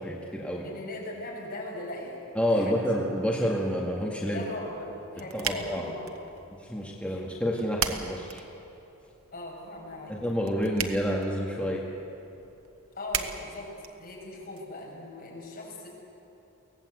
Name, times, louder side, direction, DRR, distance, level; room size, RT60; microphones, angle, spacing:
voice 1, 0.0-0.7 2.3-4.4 5.3-5.9 6.6-8.4 10.1-11.8, equal, 5° left, -3 dB, 1.9 m, -29 dB
voice 2, 0.6-2.2 2.5-2.8 4.2-4.9 5.1-6.1 7.0-7.2 9.3-10.1 12.9-13.7 14.0-15.9, left 1 dB, 50° left, -2 dB, 6.1 m, -39 dB
sound 1, 4.6-14.6, right 7 dB, 85° right, 1.3 m, -39 dB
24.0 x 18.0 x 8.1 m, 2.9 s
head